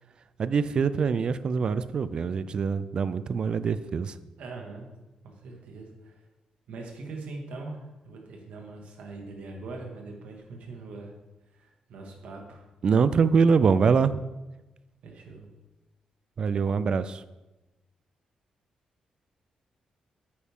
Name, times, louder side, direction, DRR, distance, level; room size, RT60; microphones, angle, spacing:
voice 1, 0.4-4.1 12.8-14.2 16.4-17.2, right 5 dB, 40° right, 14 dB, 0.4 m, -24 dB
voice 2, 4.4-4.9 5.2-6.2 6.7-11.1 11.5-12.7 15.0-15.5, right 3 dB, 80° right, 1 dB, 1.9 m, -42 dB
9.4 x 8.6 x 3.7 m, 1.1 s
wide cardioid pair, 165°, 2 cm